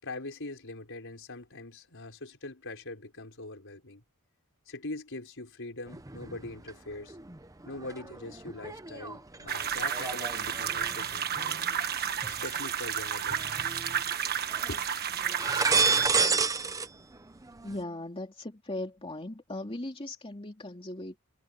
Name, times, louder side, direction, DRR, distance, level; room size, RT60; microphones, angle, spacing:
voice 1, 0.0-4.0 4.7-7.2 7.7-11.7 12.4-13.6 14.7-14.8, left 2 dB, 60° left, 5.6 m, -42 dB
sound 1, 5.9-6.7 7.1-12.7 13.3-14.2 14.5-14.8 15.2-16.9 17.1-17.8, right 4 dB, 15° right, 0.8 m, -31 dB
sound 2, 9.5-16.1, right 8 dB, 45° right, 1.4 m, -32 dB
voice 2, 17.6-21.2, left 1 dB, 25° left, 2.8 m, -38 dB
head